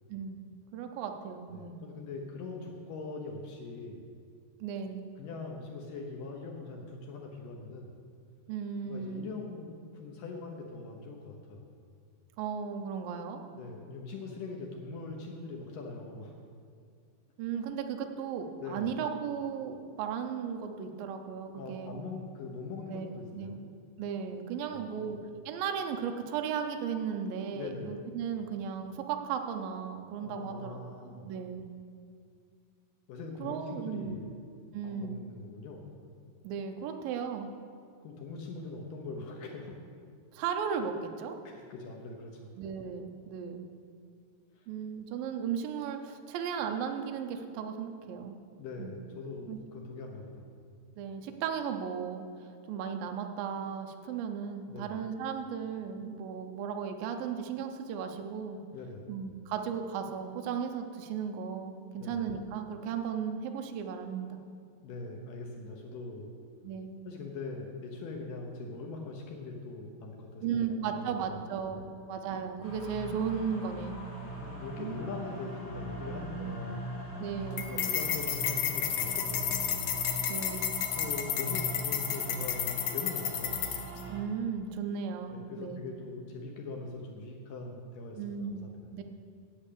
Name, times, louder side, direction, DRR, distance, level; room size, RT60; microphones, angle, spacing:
voice 1, 0.1-1.8 4.6-5.1 8.5-9.3 12.4-13.4 17.4-22.0 22.9-23.1 23.3-23.6 24.0-25.2 25.5-31.7 33.4-34.2 34.7-35.2 36.4-37.5 40.3-41.4 42.6-43.7 44.7-48.4 48.8-49.0 49.5-49.6 51.0-58.6 59.1-64.4 66.6-67.0 70.4-74.0 74.8-75.1 77.2-77.7 80.3-80.8 84.1-85.9 88.2-89.0, right 7 dB, 75° right, 5 dB, 2.3 m, -36 dB
voice 2, 1.5-4.1 5.2-8.0 8.8-11.7 13.5-16.3 18.6-18.9 21.6-23.6 24.7-25.1 27.5-28.0 30.2-31.3 33.1-34.3 34.8-35.9 38.0-39.8 41.4-42.5 44.6-44.7 48.6-50.5 54.7-55.0 58.7-59.1 61.9-62.2 64.8-66.4 67.1-71.4 71.7-71.8 74.2-76.9 77.7-79.8 80.9-83.7 85.3-88.9, left 3 dB, 70° left, 0 dB, 2.2 m, -42 dB
sound 1, 72.6-84.2, right 2 dB, 15° left, 3.1 m, -40 dB
sound 2, 77.6-84.0, left 10 dB, 85° left, 1.7 m, -32 dB
8.7 x 8.1 x 8.4 m, 2.2 s
omnidirectional pair, 4.7 m